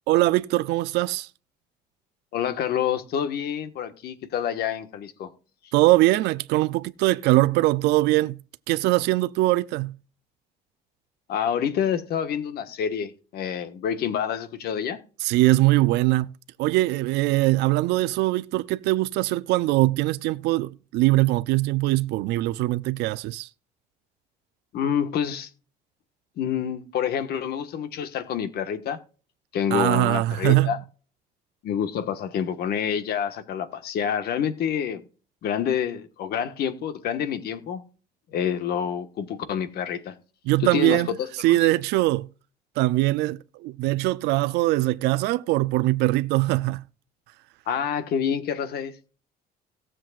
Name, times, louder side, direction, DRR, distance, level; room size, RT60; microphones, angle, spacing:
voice 1, 0.1-1.3 5.7-8.4 8.7-9.9 15.2-16.3 16.6-23.5 29.7-30.7 40.5-42.3 42.8-46.8, right 18 dB, 90° right, 0.4 m, -22 dB
voice 2, 2.3-5.3 11.3-15.0 24.7-25.5 26.4-29.0 29.5-30.8 31.6-35.0 35.4-37.8 38.3-40.1 40.7-41.7 47.7-48.9, left 8 dB, 70° left, 1.5 m, -27 dB
18.0 x 7.6 x 2.4 m
cardioid pair, 110°, 17 cm